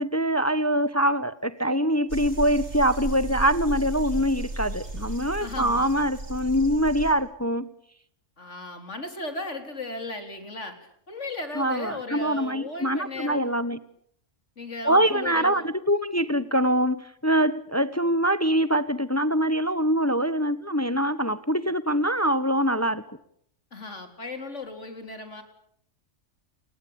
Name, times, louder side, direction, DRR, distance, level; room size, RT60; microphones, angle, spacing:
voice 1, 0.0-7.7 11.6-13.8 14.8-23.0, equal, 15° left, 14 dB, 1.1 m, -24 dB
sound 1, 2.1-7.1, right 1 dB, 60° right, 4.7 m, -34 dB
voice 2, 5.4-6.0 8.4-10.8 11.1-13.6 14.6-15.7 23.7-25.4, left 2 dB, 65° left, 7 dB, 4.3 m, -36 dB
30.0 x 21.5 x 8.9 m, 0.68 s
omnidirectional pair, 1.3 m